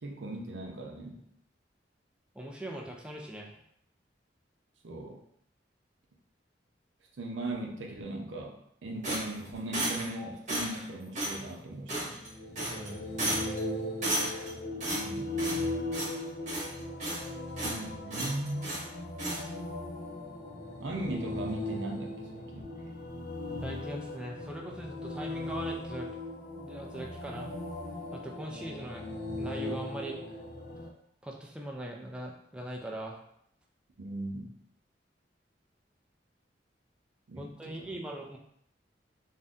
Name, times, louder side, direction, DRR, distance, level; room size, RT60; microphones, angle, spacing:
voice 1, 0.0-1.3 4.8-5.2 7.2-12.3 14.9-15.6 17.6-18.7 20.8-22.7 34.0-34.5 37.3-37.9, right 1 dB, 80° right, 1 dB, 0.6 m, -38 dB
voice 2, 2.3-3.6 12.7-13.1 23.6-26.1 26.6-27.5 28.1-29.1 29.4-30.4 31.2-33.2 37.4-38.4, right 1 dB, 5° right, 0 dB, 0.4 m, -40 dB
sound 1, 9.0-10.2 10.5-10.8 11.2-11.4 11.9-12.3 12.6-12.9 13.2-13.6 14.0-14.5 14.8-15.7 15.9-16.2 16.5-17.3 17.6-17.8 18.1-18.9 19.2-19.4, right 1 dB, 40° right, 1.0 m, -33 dB
sound 2, 12.1-30.9, left 1 dB, 55° left, 0.5 m, -38 dB
2.6 x 2.1 x 3.5 m, 0.70 s
head